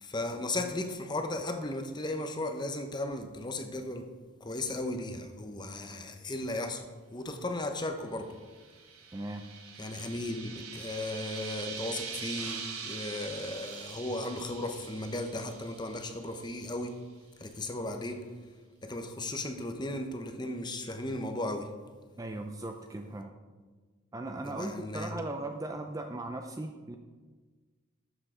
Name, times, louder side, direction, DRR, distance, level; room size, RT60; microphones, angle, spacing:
voice 1, 0.0-4.1 4.4-6.8 7.1-8.3 9.8-17.0 17.4-18.3 18.8-21.7 24.4-25.2, left 2 dB, 20° left, 5 dB, 0.8 m, -36 dB
sound 1, 8.3-16.6, right 6 dB, 85° right, 1.4 m, -43 dB
voice 2, 9.1-9.5 22.2-23.3 24.1-27.0, right 2 dB, 15° right, 5 dB, 0.4 m, -38 dB
13.0 x 7.2 x 3.8 m, 1.4 s
head